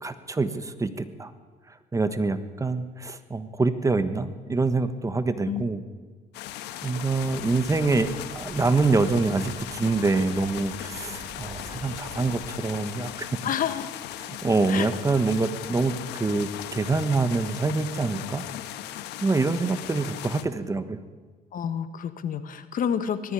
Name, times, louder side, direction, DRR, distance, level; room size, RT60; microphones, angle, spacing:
voice 1, 0.0-1.3 1.9-5.8 6.8-13.4 14.4-18.5 19.2-21.0, right 3 dB, 20° right, 11 dB, 1.3 m, -25 dB
sound 1, 6.3-20.4, left 12 dB, 85° left, 1.2 m, -38 dB
sound 2, 7.1-12.5, right 5 dB, 50° right, 2.5 m, -46 dB
voice 2, 13.4-13.9 14.7-14.9 21.5-23.3, left 8 dB, 55° left, 11 dB, 1.5 m, -29 dB
19.0 x 13.5 x 10.0 m, 1.4 s
cardioid pair, 110°, 17 cm